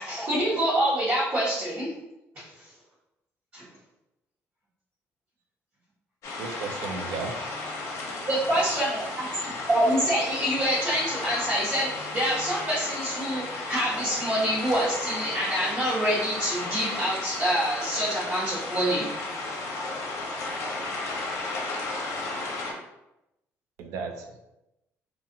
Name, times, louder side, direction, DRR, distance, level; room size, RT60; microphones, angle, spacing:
voice 1, 0.0-1.9 2.4-2.5 3.5-3.6 8.3-9.3 9.7-19.1, equal, 40° right, -10 dB, 1.0 m, -26 dB
sound 1, 6.2-22.7, left 2 dB, 70° left, 0.6 m, -34 dB
voice 2, 6.4-7.3 8.0-8.3 8.7-8.8 23.8-24.4, right 4 dB, 90° right, 4 dB, 0.4 m, -35 dB
2.7 x 2.4 x 2.6 m, 0.91 s
cardioid pair, 130°, 5 cm